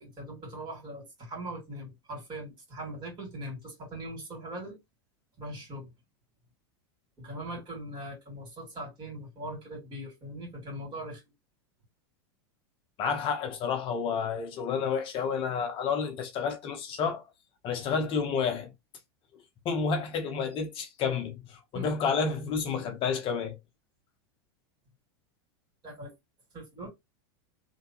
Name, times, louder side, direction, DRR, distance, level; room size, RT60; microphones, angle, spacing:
voice 1, 0.0-4.8 5.4-5.9 7.2-11.2 21.7-21.9 25.8-26.1 26.5-26.9, right 1 dB, 35° right, 2.2 m, -40 dB
voice 2, 13.0-17.3 17.6-18.7 19.6-23.6, left 5 dB, 40° left, 0.7 m, -30 dB
3.3 x 2.2 x 2.9 m
hypercardioid pair, 110°, 14 cm